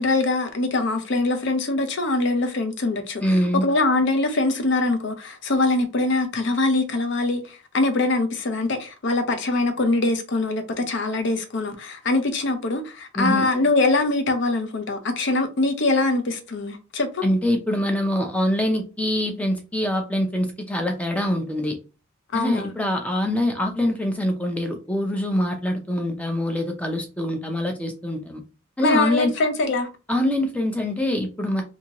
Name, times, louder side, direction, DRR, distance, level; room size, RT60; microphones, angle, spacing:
voice 1, 0.0-17.2 22.3-22.7 28.8-29.9, left 2 dB, 55° left, 0.5 m, -23 dB
voice 2, 3.2-3.7 13.2-13.5 17.2-21.7 22.3-28.4 28.8-29.3 30.1-31.6, left 1 dB, 5° left, 0.4 m, -24 dB
2.7 x 2.6 x 2.9 m
head